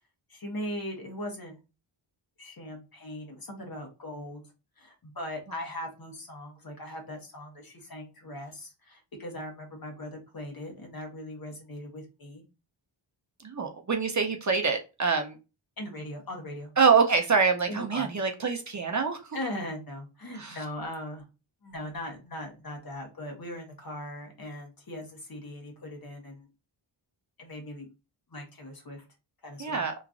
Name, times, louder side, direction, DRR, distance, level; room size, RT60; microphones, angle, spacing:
voice 1, 0.3-1.6 2.4-4.4 4.8-12.4 15.8-16.7 17.7-18.1 19.3-21.2 21.6-26.5 27.4-27.9 28.3-29.0 29.4-29.8, left 1 dB, 45° left, 2 dB, 1.2 m, -39 dB
voice 2, 13.4-15.4 16.8-19.4 20.4-20.6 29.6-29.9, right 5 dB, 35° right, 4 dB, 0.6 m, -25 dB
3.0 x 2.4 x 2.4 m, 0.28 s
cardioid pair, 65°, 49 cm